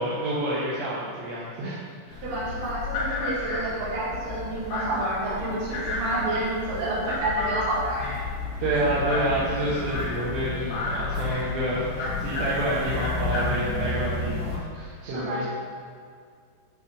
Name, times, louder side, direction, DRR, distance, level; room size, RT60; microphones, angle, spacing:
voice 1, 0.0-1.8 2.1-2.2 8.6-15.5, right 1 dB, 75° right, -7 dB, 3.1 m, -28 dB
sound 1, 2.1-14.6, left 3 dB, 70° left, 3.2 m, -31 dB
voice 2, 2.2-8.1 15.0-15.5, right 1 dB, 55° right, -6 dB, 3.1 m, -29 dB
8.1 x 6.1 x 5.2 m, 2.1 s
omnidirectional pair, 5.4 m